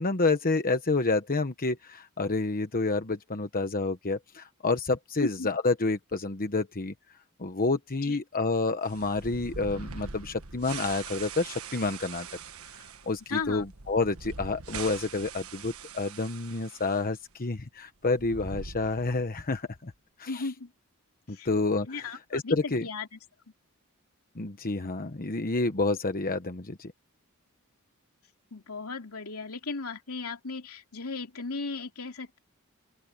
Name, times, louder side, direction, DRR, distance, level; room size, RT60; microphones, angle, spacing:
voice 1, 0.0-6.9 7.4-12.3 12.7-19.9 20.2-20.4 21.3-22.9 24.4-26.9, left 3 dB, 40° left, 1.1 m, -29 dB
sound 1, 8.8-17.0 17.3-17.4 18.0-19.4, right 5 dB, 70° right, 1.5 m, -43 dB
voice 2, 13.3-13.6 20.3-20.7 21.3-21.5 21.9-23.2 28.5-32.4, left 4 dB, 75° left, 2.9 m, -36 dB
open air
head